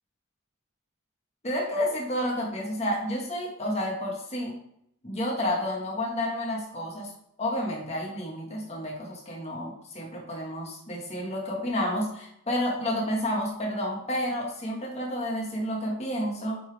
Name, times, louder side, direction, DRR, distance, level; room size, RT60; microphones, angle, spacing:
voice 1, 1.4-4.6 5.0-7.1 7.4-16.6, left 1 dB, 30° left, -2 dB, 1.5 m, -30 dB
8.4 x 4.0 x 3.4 m, 0.76 s
head